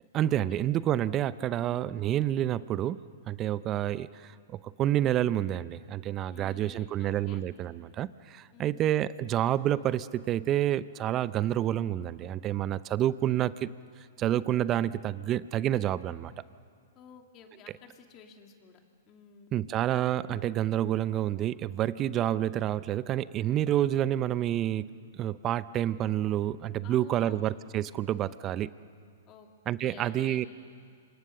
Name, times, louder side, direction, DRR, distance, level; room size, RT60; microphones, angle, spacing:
voice 1, 0.1-13.7 14.2-16.3 19.5-28.7 29.7-30.5, right 12 dB, 30° right, 17 dB, 0.7 m, -29 dB
voice 2, 1.6-2.0 6.3-7.4 8.5-8.9 16.9-18.8 19.1-19.6 26.8-27.5 29.3-29.5 29.8-30.5, left 7 dB, 35° left, 4 dB, 2.8 m, -52 dB
27.5 x 25.0 x 6.7 m, 2.3 s
hypercardioid pair, 120°, 0 cm